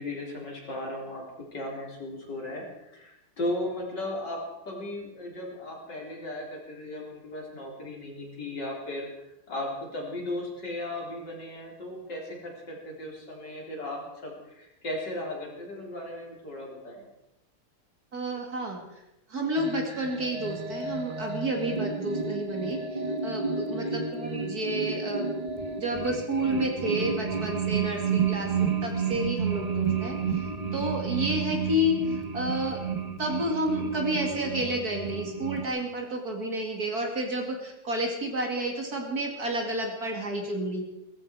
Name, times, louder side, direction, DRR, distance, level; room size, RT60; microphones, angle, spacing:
voice 1, 0.0-9.1 9.5-17.1 23.8-24.1, left 1 dB, 55° left, -1 dB, 4.5 m, -36 dB
voice 2, 18.1-18.8 19.3-25.3 25.8-30.2 30.7-32.0 32.3-32.8 33.2-40.8, right 1 dB, 45° right, 2 dB, 2.7 m, -30 dB
sound 1, 19.6-35.7, right 5 dB, 25° right, 1.0 m, -31 dB
18.5 x 14.5 x 4.7 m, 0.91 s
omnidirectional pair, 2.3 m